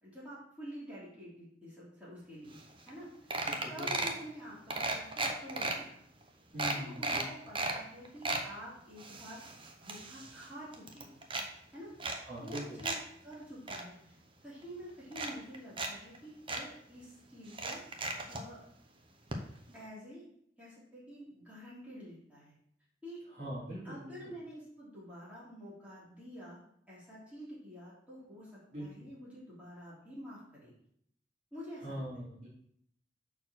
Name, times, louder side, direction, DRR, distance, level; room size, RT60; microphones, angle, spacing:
voice 1, 0.0-2.6 2.9-3.4 3.7-6.0 6.6-9.4 9.8-11.2 11.7-11.9 12.3-12.9 13.2-14.2 14.4-17.8 18.3-18.6 19.7-20.2 20.6-22.5 23.0-23.2 23.8-26.6 26.9-30.7 31.5-32.0, equal, 10° right, -8 dB, 3.2 m, -48 dB
sound 1, 2.6-2.7 2.9-3.0 3.3-4.2 4.7-5.7 6.2-6.3 6.6-7.8 8.0-8.5 9.0-10.5 10.7-11.5 12.0-13.0 13.3-13.8 14.6-14.7 15.1-15.9 16.1-16.2 16.5-16.6 17.5-18.4 19.3-19.4 19.7-19.8, right 2 dB, 30° right, 0.8 m, -35 dB
voice 2, 3.4-3.9 6.5-7.2 12.2-12.8 23.3-24.1 28.7-28.9 31.8-32.5, equal, 45° right, -12 dB, 3.2 m, -41 dB
5.7 x 4.5 x 6.3 m, 0.70 s
head